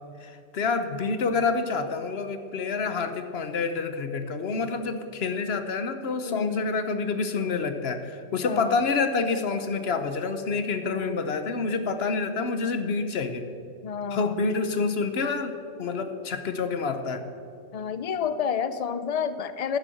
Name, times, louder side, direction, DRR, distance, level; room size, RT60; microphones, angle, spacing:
voice 1, 0.2-13.5 14.1-17.3, left 4 dB, 60° left, 9 dB, 1.1 m, -28 dB
voice 2, 6.2-6.7 8.4-8.8 10.9-11.4 13.8-14.5 17.7-19.8, left 7 dB, 45° left, 13 dB, 0.5 m, -30 dB
11.0 x 9.2 x 7.8 m, 2.5 s
omnidirectional pair, 1.2 m